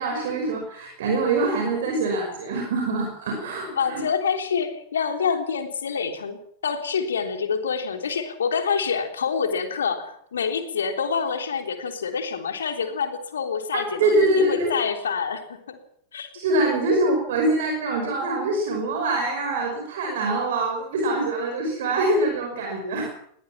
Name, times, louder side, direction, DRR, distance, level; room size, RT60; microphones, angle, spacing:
voice 1, 0.0-4.0 14.0-14.7 16.3-23.1, right 2 dB, 55° right, 2 dB, 5.5 m, -24 dB
voice 2, 3.8-15.8 16.1-16.3, left 6 dB, 65° left, 6 dB, 3.4 m, -27 dB
21.0 x 17.5 x 7.4 m, 0.68 s
figure-of-eight pair, 90°, 0 cm